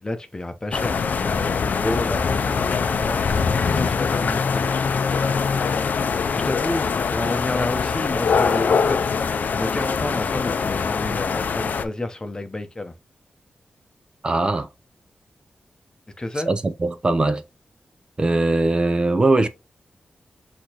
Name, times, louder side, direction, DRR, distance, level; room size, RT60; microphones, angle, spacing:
voice 1, 0.0-3.2 3.7-5.4 5.7-5.8 6.3-9.0 9.5-12.9 16.2-16.5, left 2 dB, 25° left, 0.8 m, -30 dB
sound 1, 0.7-11.8, left 5 dB, 70° left, 0.5 m, -23 dB
voice 2, 14.2-14.7 16.3-17.4 18.2-19.5, right 2 dB, 30° right, 0.5 m, -20 dB
6.2 x 2.9 x 2.9 m
wide cardioid pair, 90°, 3 cm